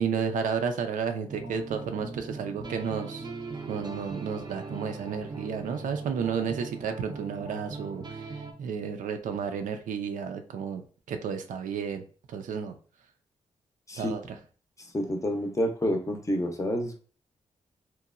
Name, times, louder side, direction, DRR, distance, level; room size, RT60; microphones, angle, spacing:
voice 1, 0.0-3.3 3.7-10.8 11.1-12.7 14.0-14.4, right 6 dB, 80° right, 7 dB, 0.4 m, -32 dB
sound 1, 1.3-8.5, right 4 dB, 35° right, 0.5 m, -40 dB
voice 2, 14.9-17.0, equal, 25° left, 4 dB, 0.6 m, -28 dB
2.9 x 2.1 x 2.4 m, 0.40 s
cardioid pair, 65°, 13 cm